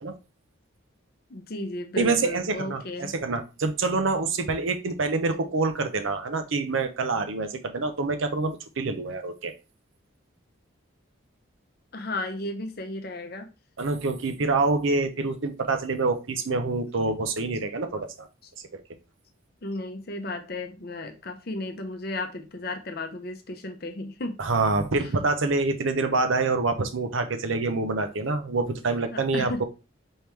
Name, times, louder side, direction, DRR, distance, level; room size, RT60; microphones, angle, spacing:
voice 1, 1.3-3.1 11.9-13.5 19.6-24.4 25.0-25.2 29.0-29.6, left 2 dB, 50° left, 0.7 m, -34 dB
voice 2, 2.0-9.5 13.8-18.3 18.7-18.8 24.4-29.6, right 3 dB, 75° right, 0.6 m, -26 dB
4.5 x 3.5 x 3.1 m
head